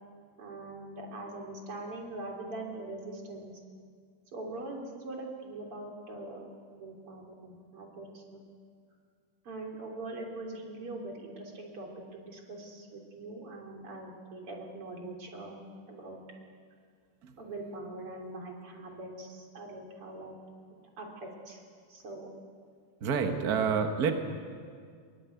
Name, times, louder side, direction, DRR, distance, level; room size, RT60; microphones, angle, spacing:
voice 1, 0.4-3.5 4.3-6.5 6.7-8.4 9.5-15.6 15.9-16.2 17.4-20.4 21.0-21.6 21.9-22.3 23.3-23.7, right 2 dB, 40° right, 0 dB, 4.0 m, -42 dB
voice 2, 23.0-24.1, right 6 dB, 60° right, 5 dB, 0.9 m, -28 dB
22.0 x 20.5 x 9.3 m, 2.1 s
omnidirectional pair, 3.8 m